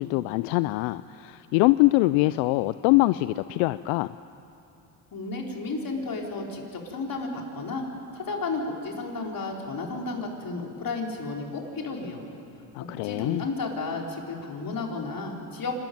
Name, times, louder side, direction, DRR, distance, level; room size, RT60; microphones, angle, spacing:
voice 1, 0.0-4.1 12.7-13.4, left 20 dB, 80° left, 15 dB, 0.5 m, -23 dB
voice 2, 5.1-7.9 8.1-12.2 13.0-15.7, left 3 dB, 45° left, 0 dB, 4.2 m, -32 dB
26.0 x 13.0 x 9.4 m, 2.7 s
supercardioid pair, 70°, 47 cm